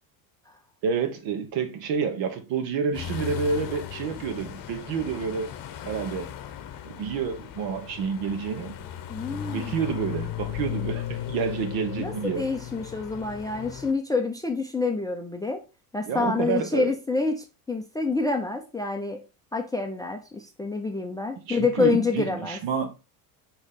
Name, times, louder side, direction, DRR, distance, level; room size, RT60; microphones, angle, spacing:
voice 1, 0.8-5.5 5.8-6.3 6.8-8.7 9.3-12.4 16.1-16.9 21.5-22.9, right 6 dB, 60° right, 1.4 m, -29 dB
sound 1, 2.9-13.9, left 11 dB, 40° left, 0.9 m, -36 dB
voice 2, 9.1-9.7 12.0-15.6 15.9-19.2 19.5-22.6, left 3 dB, 10° left, 0.5 m, -27 dB
6.3 x 3.1 x 5.0 m
supercardioid pair, 110°, 50 cm